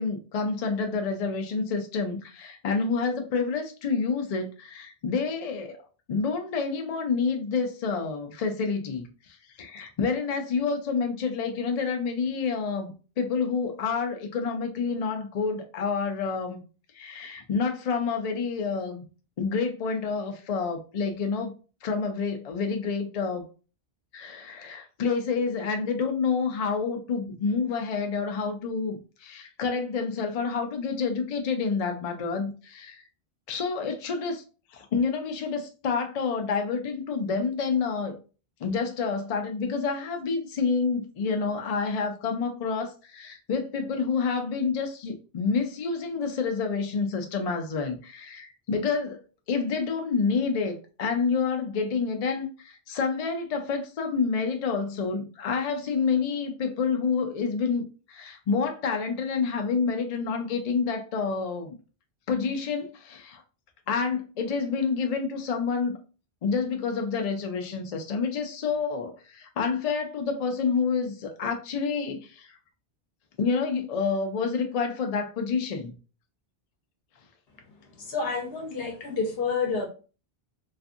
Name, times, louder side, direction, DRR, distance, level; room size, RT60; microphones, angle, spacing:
voice 1, 0.0-5.8 6.1-9.1 9.6-16.6 16.9-19.0 19.4-21.5 21.8-23.5 24.1-33.0 33.5-34.4 34.7-38.2 38.6-49.2 49.5-61.7 62.3-63.4 63.9-66.0 66.4-72.6 73.4-75.9, left 5 dB, 55° left, 0.4 m, -28 dB
voice 2, 78.0-79.8, left 4 dB, 70° left, 0.9 m, -29 dB
2.5 x 2.4 x 2.4 m
omnidirectional pair, 1.1 m